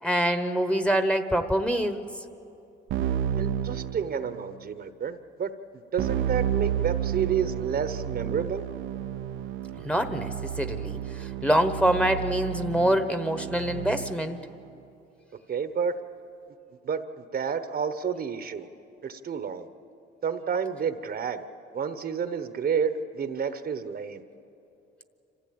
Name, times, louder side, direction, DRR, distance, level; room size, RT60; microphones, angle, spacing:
voice 1, 0.0-2.1 9.8-10.3 10.6-14.4, equal, 5° left, 8 dB, 1.2 m, -25 dB
Keyboard (musical), 2.9-4.6 6.0-14.4, right 10 dB, 90° right, 0.8 m, -31 dB
voice 2, 3.4-5.5 5.9-8.7 15.5-15.9 16.8-18.7 19.0-19.7 20.2-21.4 21.7-24.2, right 7 dB, 50° right, 10 dB, 1.1 m, -30 dB
26.0 x 15.5 x 8.6 m, 2.8 s
cardioid pair, 90°, 20 cm